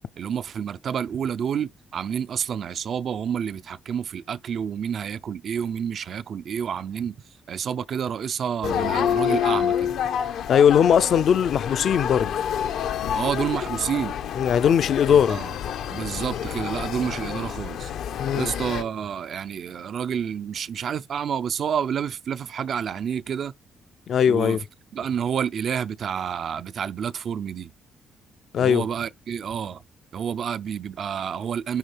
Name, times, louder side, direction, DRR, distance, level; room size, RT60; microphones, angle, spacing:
voice 1, 0.2-7.2 7.5-10.0 13.1-14.2 15.3-15.5 15.9-17.9 18.3-23.5 24.3-24.6 24.9-27.7 28.6-29.8 30.1-31.8, right 8 dB, 50° right, 0.5 m, -29 dB
sound 1, 8.6-18.8, left 9 dB, 80° left, 1.0 m, -28 dB
voice 2, 10.5-12.3 14.4-15.4 18.2-18.5 24.1-24.6 28.5-28.8, left 8 dB, 55° left, 0.5 m, -19 dB
10.5 x 3.8 x 3.4 m
cardioid pair, 150°, 0 cm